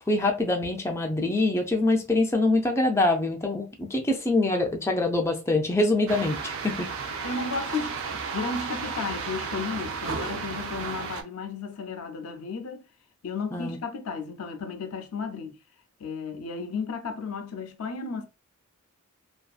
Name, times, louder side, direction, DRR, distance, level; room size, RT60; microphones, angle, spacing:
voice 1, 0.1-7.3 13.5-13.8, left 2 dB, 10° left, 0.4 m, -25 dB
sound 1, 6.1-11.2, right 5 dB, 60° right, 0.4 m, -33 dB
voice 2, 7.2-12.8 13.2-15.6 16.0-18.3, left 4 dB, 80° left, 0.5 m, -34 dB
2.5 x 2.3 x 2.3 m
head